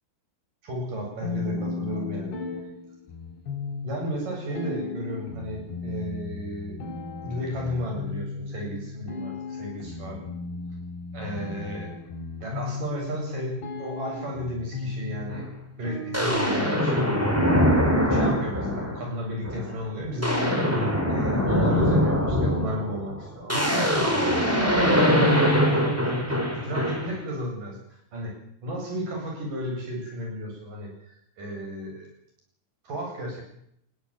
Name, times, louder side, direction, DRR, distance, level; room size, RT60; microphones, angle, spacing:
voice 1, 0.6-2.4 3.8-6.8 7.2-10.3 11.1-12.0 12.4-15.5 15.8-17.1 18.1-28.3 28.6-32.1 32.8-33.4, equal, 50° right, 0 dB, 9.6 m, -33 dB
sound 1, 1.2-19.2, left 3 dB, 80° left, 6.6 m, -36 dB
sound 2, 15.3-15.4 16.1-19.0 19.5-19.7 20.0-27.2, equal, 5° right, 4.9 m, -23 dB
21.0 x 16.0 x 9.2 m, 0.72 s
omnidirectional pair, 4.9 m